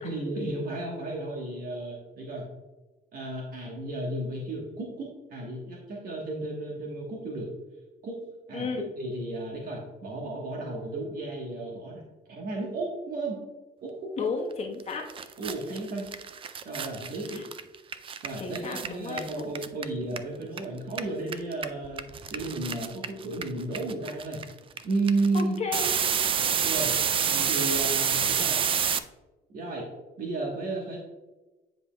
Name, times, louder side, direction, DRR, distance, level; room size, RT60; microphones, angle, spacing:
voice 1, 0.0-2.5 3.1-7.5 8.0-8.2 8.5-8.7 9.0-12.0 12.3-13.4 13.8-14.3 15.4-16.1 16.6-17.4 18.2-24.4 24.8-25.6 26.6-27.0 27.3-28.6 29.5-29.9 30.2-31.0, right 2 dB, 60° right, -2 dB, 1.3 m, -33 dB
voice 2, 8.5-8.9 14.2-15.1 17.3-17.4 18.4-19.4 25.3-25.9 26.5-26.7, left 4 dB, 40° left, 2 dB, 1.1 m, -33 dB
sound 1, 14.8-14.9 15.1-20.6 20.9-29.0, right 7 dB, 30° right, 0.3 m, -28 dB
9.5 x 5.2 x 2.3 m, 1.1 s
cardioid pair, 110°, 17 cm